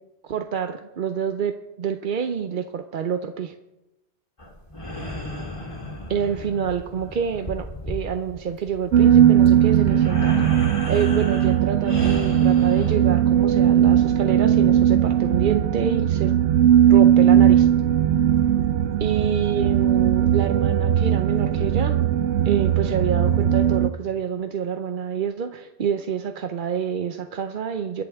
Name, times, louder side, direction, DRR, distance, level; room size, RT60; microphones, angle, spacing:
voice 1, 0.2-3.6 6.1-10.6 10.9-16.3 16.9-17.7 19.0-22.0 22.4-28.0, right 7 dB, 50° right, 7 dB, 0.7 m, -27 dB
sound 1, 4.4-13.0, left 1 dB, 25° left, 3.0 m, -35 dB
sound 2, 8.9-23.9, right 10 dB, 85° right, 1.0 m, -18 dB
23.5 x 10.5 x 3.5 m, 0.97 s
omnidirectional pair, 1.2 m